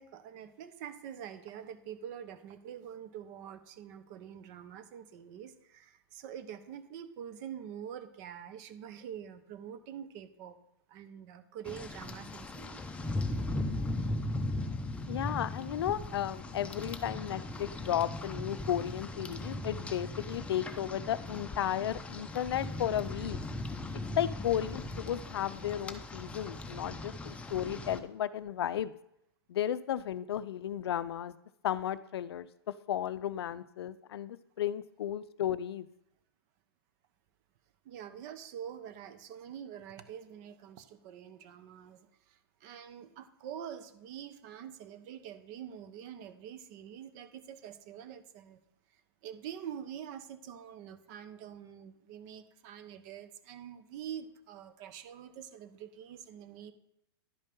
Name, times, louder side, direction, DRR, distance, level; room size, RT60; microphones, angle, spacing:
voice 1, 0.0-10.6 10.9-12.9 37.8-48.6 49.2-56.7, right 9 dB, 45° right, 11 dB, 1.0 m, -46 dB
Rain, 11.6-28.0, left 1 dB, 10° left, 0.7 m, -38 dB
voice 2, 15.1-23.4 24.2-28.9 29.5-31.4 31.6-35.9, left 10 dB, 70° left, 16 dB, 0.5 m, -34 dB
11.0 x 5.3 x 5.4 m, 0.79 s
hypercardioid pair, 125°, 14 cm